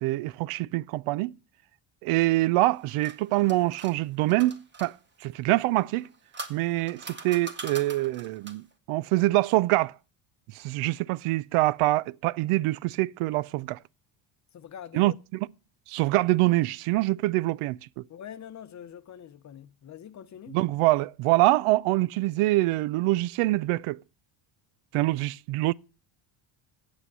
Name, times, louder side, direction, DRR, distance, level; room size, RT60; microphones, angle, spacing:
voice 1, 0.0-1.4 2.0-5.0 5.2-6.1 6.5-9.9 10.5-13.8 14.9-15.5 15.9-18.0 20.5-24.0 24.9-25.7, right 18 dB, 85° right, 0.6 m, -25 dB
sound 1, 2.6-4.9 5.9-8.7, right 2 dB, 20° right, 1.3 m, -43 dB
voice 2, 14.5-15.2 18.1-20.6, left 9 dB, 35° left, 0.7 m, -44 dB
8.5 x 7.8 x 8.0 m
cardioid pair, 135°, 50 cm